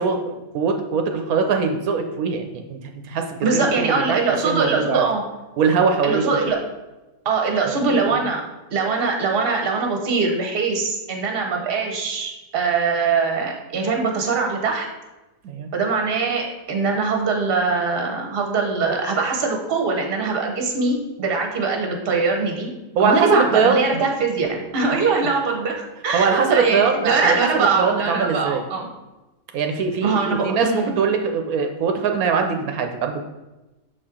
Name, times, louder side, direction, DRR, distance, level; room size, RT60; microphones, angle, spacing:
voice 1, 0.0-2.8 3.0-5.0 5.6-6.2 7.9-8.0 15.4-15.7 22.9-24.0 26.1-28.6 29.5-33.2, right 5 dB, 85° right, 5 dB, 1.1 m, -22 dB
voice 2, 3.4-5.2 6.0-6.6 7.2-8.4 8.7-14.9 15.7-22.7 23.0-25.7 26.0-28.9 30.0-30.8, right 4 dB, 45° right, 2 dB, 1.1 m, -22 dB
6.8 x 4.4 x 3.7 m, 1.0 s
omnidirectional pair, 1.5 m